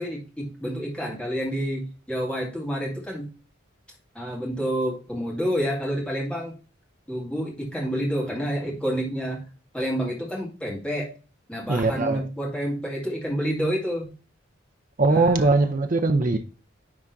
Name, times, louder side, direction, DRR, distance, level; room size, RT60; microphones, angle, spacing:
voice 1, 0.0-3.3 4.1-6.5 7.1-9.4 9.7-11.1 11.5-14.1 15.1-15.5 16.3-16.4, equal, 5° left, 1.9 m, -29 dB
voice 2, 11.7-12.2 15.0-16.4, right 3 dB, 40° right, 0.5 m, -20 dB
10.0 x 3.5 x 2.7 m
head